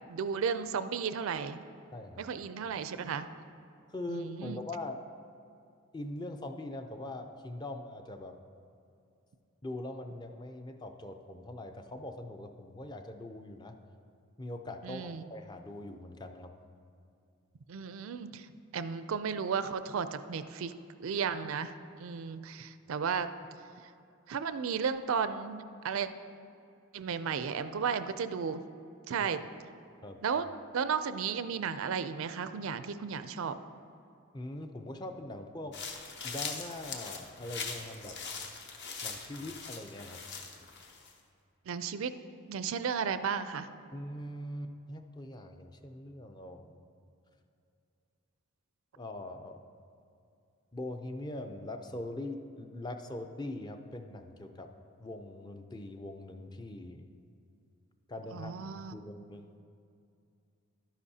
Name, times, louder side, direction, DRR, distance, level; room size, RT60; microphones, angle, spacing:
voice 1, 0.1-1.6 2.2-3.3 4.1-4.6 14.8-15.2 17.7-18.5 18.7-20.7 21.0-23.3 24.3-26.1 26.9-28.6 29.1-29.4 30.2-30.5 30.7-33.5 41.7-42.1 42.5-43.7 58.3-59.0, right 6 dB, 70° right, 12 dB, 0.4 m, -34 dB
voice 2, 1.9-2.2 3.9-5.0 5.9-8.3 9.6-13.8 14.4-16.5 30.0-30.2 34.3-35.8 36.2-38.2 39.0-40.2 43.9-46.8 49.0-49.6 50.7-54.7 55.0-57.1 58.1-58.5 58.9-59.6, left 1 dB, 20° left, 6 dB, 0.4 m, -42 dB
sound 1, 35.7-41.1, left 5 dB, 50° left, 0.8 m, -41 dB
12.0 x 10.0 x 2.8 m, 2.5 s
head